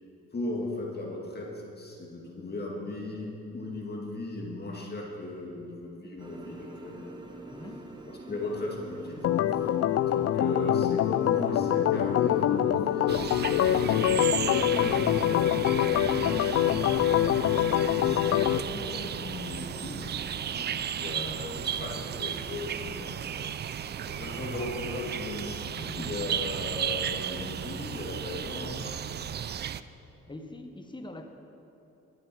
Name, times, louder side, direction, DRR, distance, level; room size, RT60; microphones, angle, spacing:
voice 1, 0.3-7.1 8.1-9.3 9.6-9.7 10.0-17.6 17.9-29.7, left 2 dB, 35° left, -1 dB, 2.1 m, -38 dB
sound 1, 6.2-18.0, right 2 dB, 15° right, 1.3 m, -45 dB
voice 2, 7.4-7.9 23.8-24.0 30.3-31.3, left 1 dB, 15° left, 5 dB, 1.2 m, -43 dB
Organ, 9.2-18.6, left 11 dB, 55° left, 0.4 m, -25 dB
sound 2, 13.1-29.8, right 9 dB, 35° right, 0.4 m, -34 dB
19.0 x 7.4 x 4.7 m, 3.0 s
cardioid pair, 90°, 30 cm